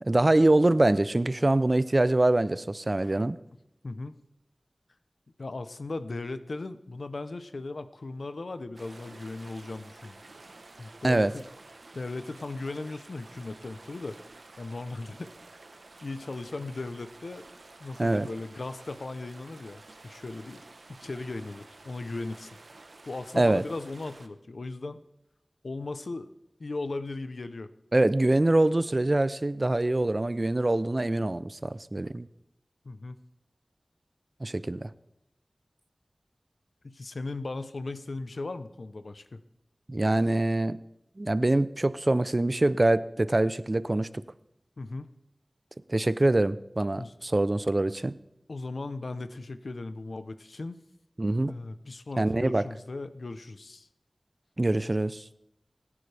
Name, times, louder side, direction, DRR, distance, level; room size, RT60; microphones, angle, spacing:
voice 1, 0.0-3.4 11.0-11.3 18.0-18.3 23.4-23.6 27.9-32.3 34.4-34.9 39.9-40.8 41.2-44.2 45.9-48.1 51.2-51.5 52.2-52.6 54.6-55.2, right 2 dB, 40° right, 16 dB, 0.5 m, -24 dB
voice 2, 3.8-4.2 5.4-10.2 10.8-11.4 11.9-15.3 16.0-17.4 17.8-20.6 20.9-22.5 23.1-25.0 25.6-26.3 26.6-27.7 32.8-33.2 36.8-39.4 44.8-45.1 47.0-47.1 48.5-50.8 51.4-53.9, left 3 dB, 85° left, 11 dB, 0.7 m, -37 dB
sound 1, 8.7-24.3, right 2 dB, 80° right, 1.0 m, -51 dB
26.5 x 11.0 x 3.4 m, 0.85 s
wide cardioid pair, 50°, 0 cm